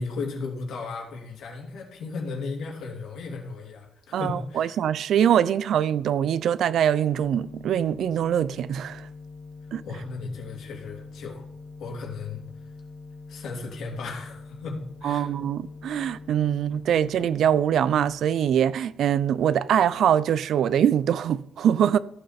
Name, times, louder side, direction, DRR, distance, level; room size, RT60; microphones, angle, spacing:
voice 1, 0.0-4.8 9.8-11.4 11.8-12.4 13.3-15.3, left 4 dB, 75° left, 3.0 m, -35 dB
voice 2, 4.1-9.0 9.7-9.8 15.0-22.0, right 9 dB, 70° right, 0.5 m, -23 dB
sound 1, 7.2-18.1, left 3 dB, 40° left, 1.2 m, -43 dB
14.5 x 7.9 x 4.3 m
cardioid pair, 160°, 0 cm